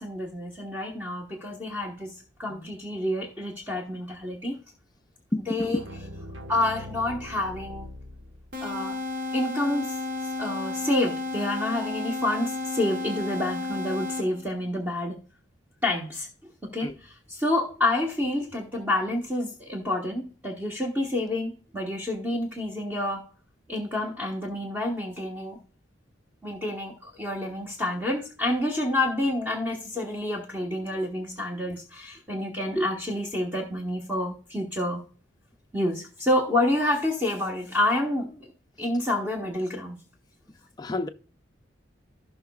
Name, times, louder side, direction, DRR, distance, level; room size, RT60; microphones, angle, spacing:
voice 1, 0.0-4.6 5.5-5.8 6.5-7.9 8.6-9.0 9.3-15.2 15.8-16.3 16.7-23.2 23.7-25.6 26.4-35.0 35.7-38.5 38.8-40.0, left 1 dB, 10° right, 1.2 m, -28 dB
voice 2, 5.3-5.8 16.8-16.9 40.8-41.1, left 1 dB, 20° left, 0.4 m, -30 dB
sound 1, 5.6-8.7, left 1 dB, 85° right, 1.2 m, -42 dB
sound 2, 8.5-14.5, left 3 dB, 60° right, 1.3 m, -32 dB
16.5 x 5.6 x 2.3 m
head